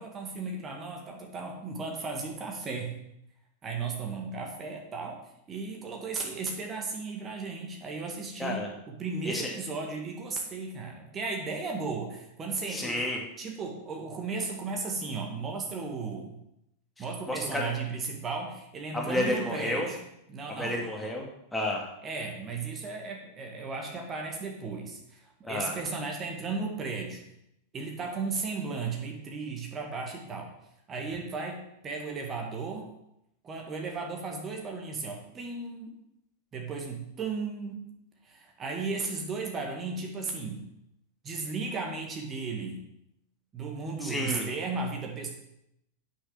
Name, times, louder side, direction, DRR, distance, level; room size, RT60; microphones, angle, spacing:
voice 1, 0.0-3.0 3.6-5.2 5.5-13.0 13.4-16.4 17.0-20.0 20.3-20.8 22.0-27.2 27.7-30.5 30.9-32.9 33.4-35.9 36.5-37.9 38.2-40.7 41.2-42.8 43.5-45.3, right 4 dB, 25° right, 1 dB, 1.8 m, -35 dB
voice 2, 8.4-8.7 9.2-9.5 12.7-13.2 17.0-17.7 18.9-19.9 20.5-21.9 25.5-25.7 44.0-44.5, left 1 dB, 5° left, -1 dB, 1.9 m, -31 dB
8.5 x 6.4 x 6.1 m, 0.81 s
figure-of-eight pair, 90°, 0 cm